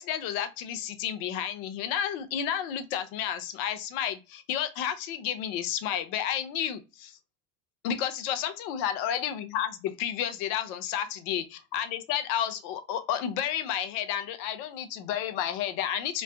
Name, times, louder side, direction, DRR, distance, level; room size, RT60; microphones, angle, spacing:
voice 1, 0.0-7.2 7.8-16.2, left 9 dB, 60° left, 0.6 m, -31 dB
3.2 x 2.1 x 2.5 m
hypercardioid pair, 75°, 37 cm